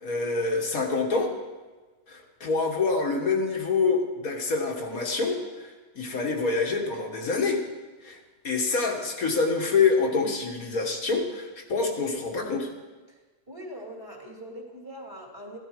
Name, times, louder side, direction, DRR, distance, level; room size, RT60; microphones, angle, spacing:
voice 1, 0.0-1.3 2.1-7.6 8.0-8.2 8.4-12.7, left 4 dB, 80° left, 1 dB, 2.1 m, -26 dB
voice 2, 13.5-15.6, equal, 15° right, -2 dB, 2.9 m, -42 dB
15.5 x 13.0 x 4.9 m, 1.3 s
omnidirectional pair, 1.5 m